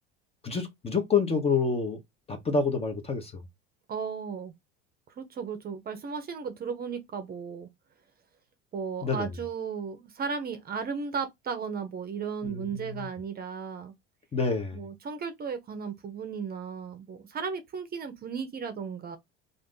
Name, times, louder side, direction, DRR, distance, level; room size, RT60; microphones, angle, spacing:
voice 1, 0.4-2.0 2.3-3.4 9.0-9.3 12.4-13.1 14.3-14.8, left 5 dB, 20° left, 0.7 m, -28 dB
voice 2, 3.9-4.5 5.2-7.7 8.7-13.9 14.7-19.2, right 6 dB, 30° right, 0.6 m, -35 dB
2.5 x 2.5 x 3.6 m
supercardioid pair, 105°, 30 cm